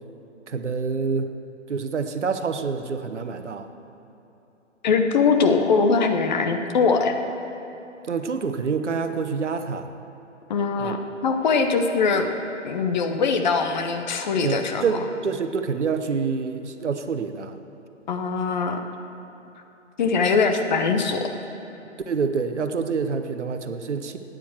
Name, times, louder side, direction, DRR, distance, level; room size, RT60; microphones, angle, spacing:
voice 1, 0.5-1.3 1.7-3.7 8.1-9.9 10.8-10.9 14.4-17.6 22.1-24.2, right 5 dB, 65° right, 8 dB, 1.0 m, -27 dB
voice 2, 4.8-7.1 10.5-12.3 12.6-14.8 18.1-18.8 20.0-21.3, left 4 dB, 35° left, 5 dB, 1.0 m, -22 dB
13.0 x 9.3 x 7.7 m, 3.0 s
figure-of-eight pair, 135°, 38 cm